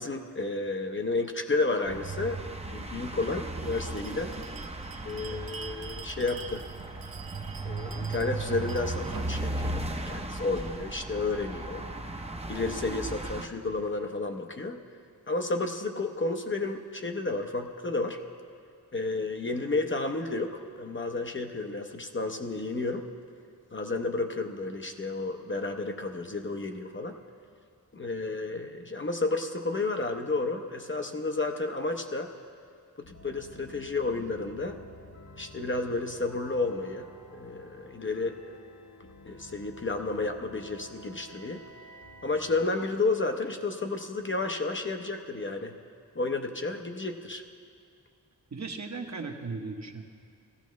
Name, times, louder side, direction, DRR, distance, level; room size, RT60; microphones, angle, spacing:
voice 1, 0.0-4.3 5.0-6.6 7.6-11.9 12.5-14.8 15.3-18.2 18.9-23.1 23.7-27.2 27.9-32.3 33.0-34.8 35.4-38.4 39.2-41.6 42.2-45.8 46.1-47.4, left 3 dB, 30° left, 4 dB, 0.7 m, -31 dB
sound 1, 1.8-13.5, right 2 dB, 15° right, 0.7 m, -36 dB
Bell, 3.5-10.8, right 6 dB, 65° right, 0.7 m, -47 dB
sound 2, 33.0-42.7, equal, 90° left, 1.3 m, -51 dB
voice 2, 48.5-50.0, right 4 dB, 50° right, 3 dB, 1.0 m, -37 dB
17.5 x 14.0 x 3.1 m, 2.3 s
wide cardioid pair, 95°, 37 cm